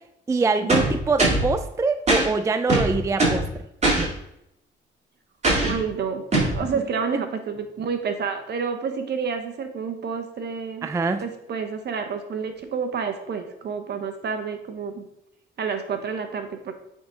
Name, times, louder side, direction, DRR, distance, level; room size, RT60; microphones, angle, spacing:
voice 1, 0.3-3.4 3.8-4.1 10.8-11.2, right 4 dB, 15° right, 10 dB, 0.3 m, -24 dB
sound 1, 0.7-1.5 2.1-2.3 2.7-3.5 3.8-4.1 5.4-5.8 6.3-6.6, right 2 dB, 35° right, 2.7 m, -20 dB
voice 2, 5.6-6.2 6.5-10.9 11.2-15.0 15.6-16.7, right 6 dB, 55° right, 6 dB, 1.0 m, -29 dB
8.5 x 3.8 x 3.9 m, 0.82 s
cardioid pair, 90°, 20 cm